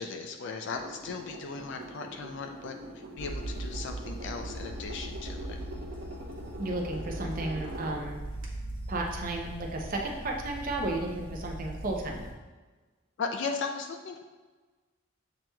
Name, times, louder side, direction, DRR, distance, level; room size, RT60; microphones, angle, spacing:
voice 1, 0.0-2.7 3.2-5.6 13.2-14.2, left 4 dB, 60° left, 4 dB, 0.4 m, -37 dB
sound 1, 0.7-8.4, right 1 dB, 70° right, 0.9 m, -44 dB
sound 2, 3.2-12.3, right 1 dB, 25° left, 0.9 m, -40 dB
voice 2, 6.6-8.2 8.9-12.3, right 2 dB, 45° right, 1 dB, 0.6 m, -33 dB
7.5 x 2.9 x 2.2 m, 1.3 s
head